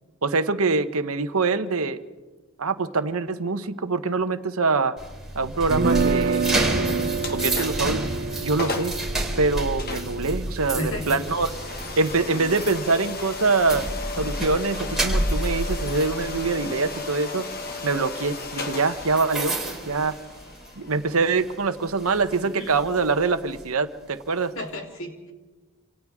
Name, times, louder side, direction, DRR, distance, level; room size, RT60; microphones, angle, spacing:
voice 1, 0.2-2.0 2.6-5.0 5.3-6.8 7.1-8.0 8.4-9.0 9.4-11.6 12.0-13.9 14.2-17.5 17.8-19.6 19.9-20.1 20.8-24.5, right 3 dB, 75° right, 10 dB, 1.1 m, -24 dB
sound 1, 5.0-20.9 21.2-21.5 22.0-23.6, right 1 dB, ahead, 4.1 m, -30 dB
sound 2, 5.7-11.7, right 4 dB, 40° right, 0.7 m, -28 dB
voice 2, 6.8-7.2 10.7-11.2 19.6-19.7 22.4-22.8 24.6-25.3, left 1 dB, 65° left, 0 dB, 3.5 m, -34 dB
sound 3, 7.2-7.9 8.3-8.4 8.6-9.0 9.8-22.5, left 3 dB, 45° left, 1.7 m, -35 dB
27.5 x 27.0 x 3.6 m, 1.2 s
head